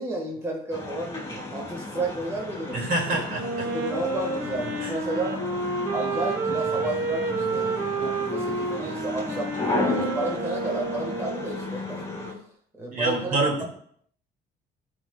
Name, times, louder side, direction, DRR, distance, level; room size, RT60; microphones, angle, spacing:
voice 1, 0.0-3.2 3.6-5.4 5.9-12.4 12.8-13.6, right 2 dB, 15° right, 0 dB, 1.6 m, -32 dB
sound 1, 0.7-12.3, left 2 dB, 20° left, 3.0 m, -34 dB
voice 2, 2.7-3.7 4.8-4.9 12.9-13.6, right 2 dB, 55° right, 0 dB, 2.3 m, -26 dB
Wind instrument woodwind instrument, 3.3-11.7, right 3 dB, 90° right, 1.4 m, -30 dB
13.0 x 5.1 x 2.3 m, 0.63 s
cardioid pair, 110°, 17 cm